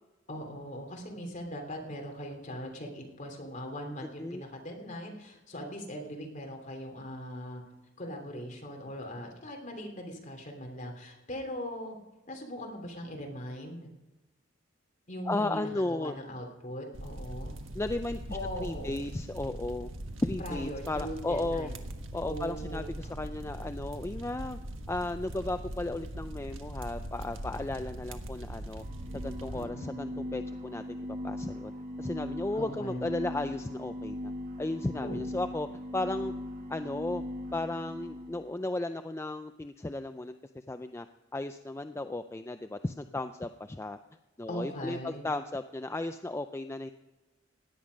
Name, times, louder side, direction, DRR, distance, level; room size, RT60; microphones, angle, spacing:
voice 1, 0.3-7.6 8.0-12.0 12.3-13.9 15.1-17.5 18.3-19.0 20.4-21.8 22.3-23.2 29.5-30.0 32.5-33.0 35.0-35.2 44.5-45.2, equal, 40° left, 2 dB, 3.0 m, -40 dB
voice 2, 15.3-16.1 17.7-19.9 20.2-21.7 22.1-24.6 24.9-28.8 29.1-31.7 32.0-34.3 34.6-35.7 35.9-36.3 36.7-37.2 37.5-41.1 41.3-44.0 44.4-46.9, left 2 dB, 15° left, 9 dB, 0.4 m, -35 dB
sound 1, 16.9-29.7, right 1 dB, 85° right, 1.4 m, -41 dB
sound 2, 28.7-38.4, left 1 dB, 45° right, 1.5 m, -39 dB
17.0 x 10.5 x 5.2 m, 1.1 s
head